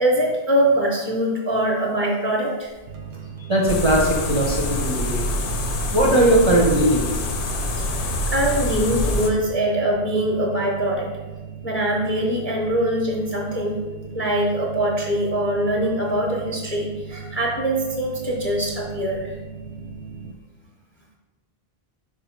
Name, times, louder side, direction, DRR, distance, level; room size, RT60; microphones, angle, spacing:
voice 1, 0.0-2.7 7.8-11.1 11.6-13.8 14.1-19.3, right 1 dB, 15° left, -1 dB, 0.4 m, -23 dB
sound 1, 2.9-20.3, right 7 dB, 85° right, 0.8 m, -38 dB
voice 2, 3.5-5.2 5.9-7.2, right 1 dB, 35° right, -3 dB, 0.5 m, -19 dB
sound 2, 3.7-9.3, left 1 dB, 65° left, 0.7 m, -25 dB
4.8 x 2.4 x 4.4 m, 1.2 s
omnidirectional pair, 1.1 m